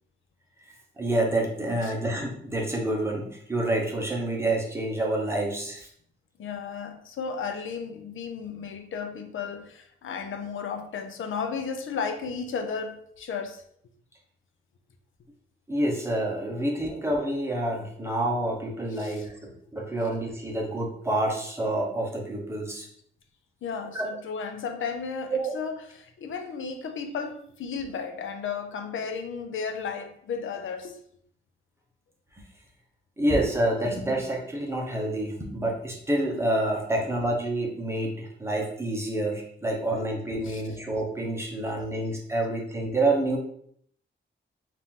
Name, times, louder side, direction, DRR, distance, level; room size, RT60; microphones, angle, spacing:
voice 1, 1.0-5.9 15.7-22.9 23.9-24.0 25.3-25.5 33.2-43.4, right 1 dB, 15° right, 0.7 m, -28 dB
voice 2, 6.4-13.6 18.9-19.3 23.6-31.0 39.8-39.9 40.4-40.6, left 5 dB, 80° left, 0.5 m, -34 dB
4.2 x 2.5 x 3.6 m
wide cardioid pair, 175°, 20 cm